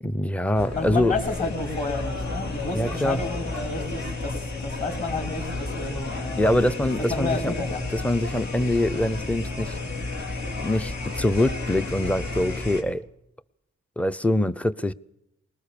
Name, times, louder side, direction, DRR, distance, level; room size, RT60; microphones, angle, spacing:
voice 1, 0.0-1.1 2.7-3.2 6.4-7.5 7.9-9.8 10.6-13.0 14.0-14.9, left 1 dB, 5° left, 0.7 m, -24 dB
sound 1, 0.5-12.8, left 3 dB, 65° left, 3.5 m, -32 dB
voice 2, 0.8-6.6 7.1-7.8, left 3 dB, 25° left, 4.6 m, -31 dB
21.0 x 19.0 x 6.9 m
cardioid pair, 60°, 30 cm